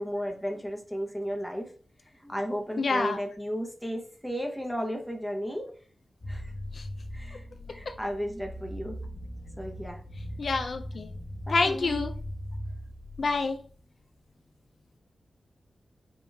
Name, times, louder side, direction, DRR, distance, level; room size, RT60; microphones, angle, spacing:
voice 1, 0.0-1.7 2.2-5.6 6.3-6.4 7.1-7.4 7.7-9.0 9.6-10.0 11.5-12.1, equal, ahead, 2 dB, 0.8 m, -34 dB
voice 2, 2.8-3.2 10.4-11.1 11.5-12.1 13.2-13.6, left 3 dB, 55° left, 6 dB, 0.4 m, -27 dB
sound 1, 6.2-13.7, equal, 30° left, 0.9 m, -39 dB
5.3 x 3.0 x 3.3 m, 0.43 s
wide cardioid pair, 170°, 0 cm